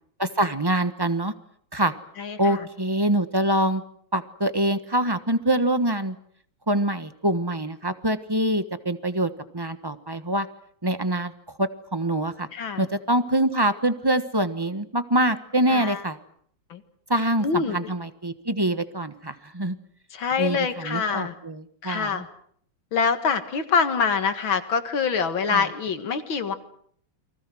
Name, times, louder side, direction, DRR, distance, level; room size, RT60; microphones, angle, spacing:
voice 1, 0.2-1.3 1.7-1.9 2.4-3.8 4.1-6.2 6.7-10.5 10.8-11.3 11.6-12.5 12.8-16.2 17.1-19.8 20.4-22.2 25.5-25.6, right 1 dB, 15° right, 11 dB, 1.0 m, -25 dB
voice 2, 2.2-2.7 12.5-12.9 15.7-16.0 16.7-16.8 17.4-17.9 20.1-21.3 21.8-22.3 22.9-26.5, left 6 dB, 80° left, 9 dB, 2.6 m, -25 dB
29.5 x 24.0 x 6.2 m, 0.64 s
omnidirectional pair, 2.2 m